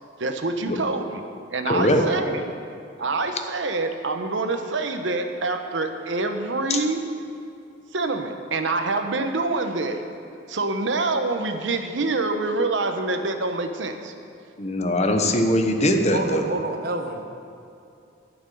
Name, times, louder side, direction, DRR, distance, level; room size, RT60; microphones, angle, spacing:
voice 1, 0.2-1.2 1.5-2.4 3.0-7.0 7.9-10.0 10.5-14.1, right 3 dB, 85° right, 6 dB, 0.9 m, -26 dB
voice 2, 1.7-2.0 6.7-6.8 14.6-16.5, left 1 dB, 40° left, 5 dB, 1.0 m, -21 dB
voice 3, 16.1-17.3, right 2 dB, 55° right, 4 dB, 1.1 m, -29 dB
11.5 x 6.1 x 9.0 m, 2.6 s
head